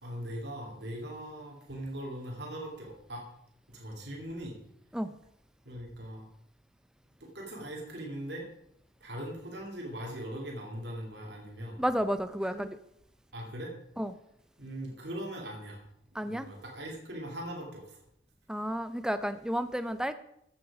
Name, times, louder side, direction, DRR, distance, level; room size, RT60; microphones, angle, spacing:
voice 1, 0.0-3.2 3.7-4.5 5.6-6.2 7.2-8.4 9.0-11.8 12.5-12.6 13.3-13.7 14.6-15.8 16.3-18.0, right 1 dB, 60° right, 2.9 m, -40 dB
voice 2, 11.8-12.8 14.0-14.1 16.1-16.5 18.5-20.1, equal, 5° right, 0.4 m, -31 dB
14.0 x 8.9 x 4.9 m
head